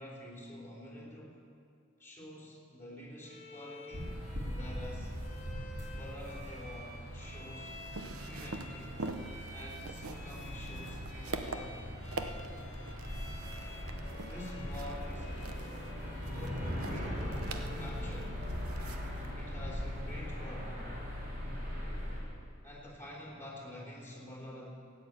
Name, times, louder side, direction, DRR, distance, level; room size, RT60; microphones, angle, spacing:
voice 1, 0.0-1.4 2.0-4.2 4.5-5.2 5.8-7.7 8.2-9.0 9.5-12.0 14.1-15.4 16.3-17.4 17.8-18.5 19.3-20.9 22.6-24.7, left 1 dB, 10° left, -4 dB, 3.7 m, -48 dB
Bowed string instrument, 3.2-18.5, left 2 dB, 35° left, 1.7 m, -52 dB
sound 1, 3.9-22.2, equal, 50° right, 4.9 m, -40 dB
sound 2, 7.4-19.3, right 3 dB, 90° right, 0.8 m, -45 dB
14.5 x 9.5 x 8.3 m, 2.3 s
head